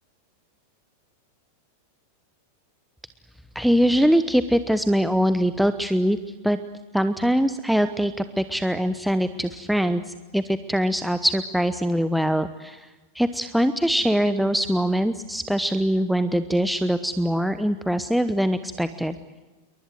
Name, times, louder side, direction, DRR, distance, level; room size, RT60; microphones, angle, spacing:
voice 1, 3.5-6.2 6.4-6.6 6.9-12.9 13.1-19.2, equal, ahead, 11 dB, 1.0 m, -23 dB
28.5 x 23.5 x 7.7 m, 1.2 s
figure-of-eight pair, 90°, 0 cm